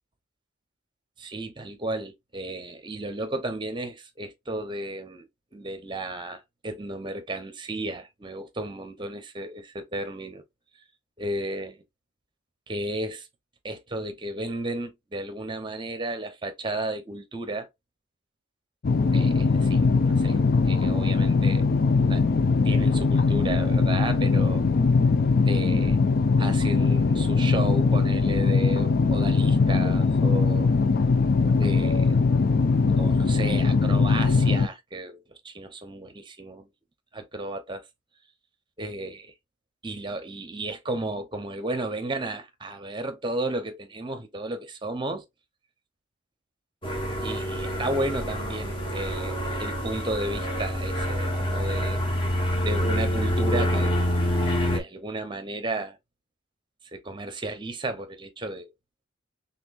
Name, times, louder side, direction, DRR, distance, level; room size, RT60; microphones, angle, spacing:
voice 1, 1.2-10.4 11.2-11.8 12.7-13.3 13.6-17.7 19.1-19.8 20.1-20.4 20.7-21.6 22.1-22.2 22.6-24.6 25.4-26.0 26.4-30.7 31.6-32.2 33.0-36.7 37.1-37.9 38.8-39.3 39.8-45.2 47.2-52.0 52.6-54.0 54.5-56.0 56.9-58.7, right 2 dB, 25° right, 0.8 m, -33 dB
sound 1, 18.8-34.7, left 4 dB, 45° left, 0.4 m, -21 dB
single prop passenger plane, 46.8-54.8, equal, 25° left, 1.3 m, -27 dB
4.3 x 3.5 x 2.5 m
head